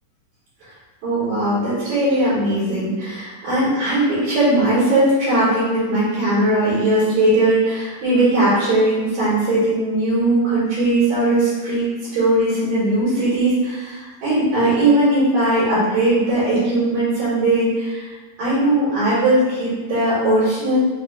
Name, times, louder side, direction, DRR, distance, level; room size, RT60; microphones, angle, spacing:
voice 1, 1.0-20.8, right 1 dB, 70° right, -13 dB, 3.2 m, -19 dB
6.6 x 2.9 x 2.2 m, 1.3 s
omnidirectional pair, 4.2 m